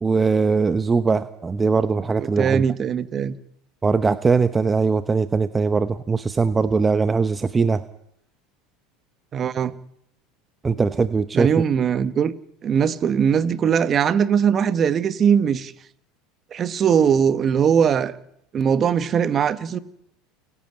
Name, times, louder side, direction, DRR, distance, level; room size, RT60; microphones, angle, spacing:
voice 1, 0.0-2.6 3.8-7.8 10.6-11.5, right 4 dB, 20° right, 0.9 m, -20 dB
voice 2, 2.2-3.4 9.3-9.7 11.3-12.3 12.6-15.7 16.5-18.1 18.5-19.8, right 7 dB, 35° right, 1.3 m, -20 dB
29.5 x 11.0 x 9.0 m
supercardioid pair, 105°, 0 cm